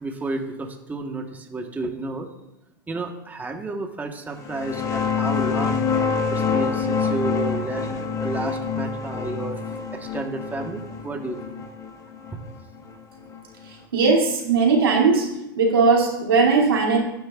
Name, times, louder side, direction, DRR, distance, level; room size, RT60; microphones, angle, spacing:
voice 1, 0.0-2.3 2.9-5.8 6.3-9.6 9.9-11.6 12.3-12.4, right 3 dB, 15° right, 3 dB, 1.4 m, -31 dB
sound 1, 4.4-13.7, left 5 dB, 30° left, 1.5 m, -26 dB
voice 2, 13.9-15.3 15.6-17.0, right 4 dB, 85° right, -1 dB, 2.8 m, -18 dB
15.5 x 9.4 x 2.5 m, 0.92 s
hypercardioid pair, 100°, 12 cm